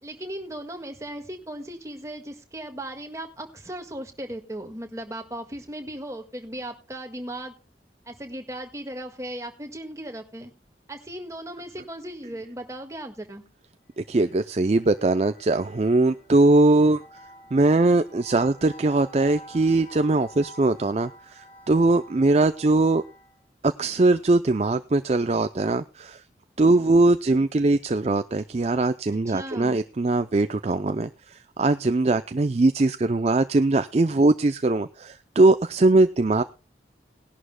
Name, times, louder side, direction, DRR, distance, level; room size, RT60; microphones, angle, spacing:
voice 1, 0.0-7.5 8.1-10.5 10.9-13.4 29.3-29.8, right 1 dB, 15° right, 4 dB, 1.7 m, -37 dB
sound 1, 13.9-23.4, equal, 50° left, 5.0 m, -49 dB
voice 2, 14.0-17.0 17.5-23.0 23.6-26.2 26.6-36.4, right 2 dB, 35° right, 10 dB, 0.5 m, -21 dB
19.5 x 11.5 x 2.2 m, 0.31 s
head